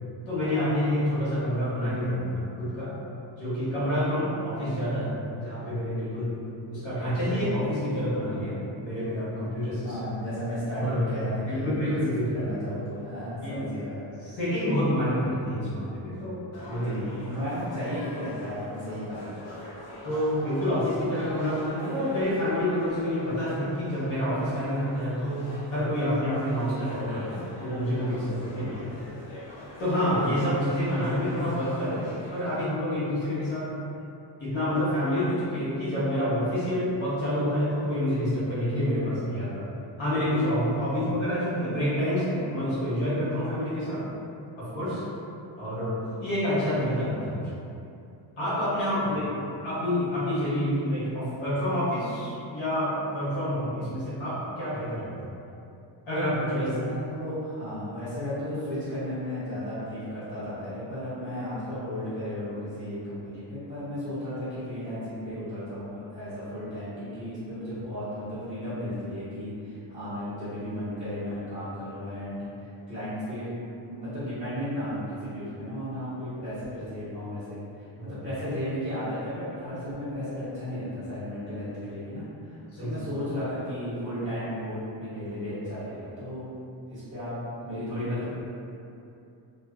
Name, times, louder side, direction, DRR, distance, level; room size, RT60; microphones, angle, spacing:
voice 1, 0.3-3.0 3.4-6.4 6.7-9.9 10.8-11.0 11.5-12.5 13.4-13.6 14.2-16.9 20.0-29.1 29.8-32.0 32.3-33.7 34.4-39.7 40.0-44.0 44.6-45.0 45.6-47.5 48.4-49.2 49.6-55.3 56.1-56.7 78.0-78.1 82.7-83.0, equal, 85° left, -10 dB, 1.1 m, -28 dB
voice 2, 9.8-12.0 12.3-14.3 16.8-19.4 28.4-28.7 40.9-41.0 49.0-49.5 56.5-73.5 73.8-77.6 78.0-86.5 86.9-87.3 87.6-88.3, equal, 15° right, -18 dB, 0.9 m, -34 dB
sound 1, 16.5-32.6, left 1 dB, 65° left, 0.7 m, -43 dB
2.4 x 2.3 x 2.3 m, 2.7 s
wide cardioid pair, 170°, 46 cm